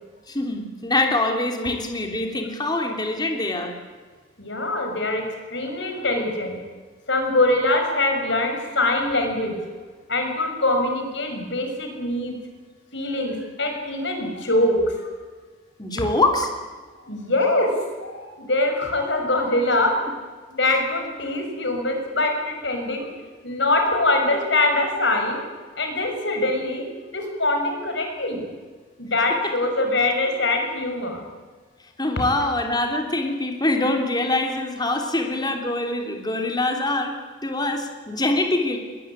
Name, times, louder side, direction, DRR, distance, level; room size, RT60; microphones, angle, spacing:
voice 1, 0.3-3.8 15.8-16.5 32.0-37.2 37.4-38.8, left 2 dB, 20° left, 4 dB, 3.1 m, -24 dB
voice 2, 4.4-5.2 5.5-6.6 7.1-9.5 10.1-12.4 12.9-15.1 17.1-17.7 18.0-20.0 20.5-23.1 23.4-25.4 25.8-26.8 27.1-28.4 29.0-31.2, left 2 dB, 65° left, 4 dB, 6.2 m, -23 dB
21.5 x 20.5 x 9.9 m, 1.5 s
head